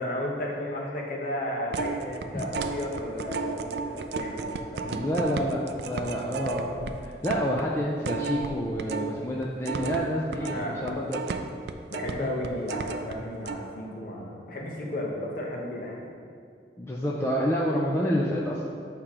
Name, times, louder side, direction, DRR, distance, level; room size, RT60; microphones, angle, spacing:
voice 1, 0.0-5.1 10.4-11.0 11.9-16.0, left 1 dB, 45° left, -2 dB, 1.0 m, -34 dB
sound 1, 1.7-9.1 9.4-13.1 13.5-13.6, right 4 dB, 60° right, 0.3 m, -33 dB
voice 2, 4.9-11.2 12.2-12.3 16.8-18.6, equal, 15° left, -4 dB, 0.4 m, -28 dB
7.7 x 2.9 x 4.9 m, 2.4 s
head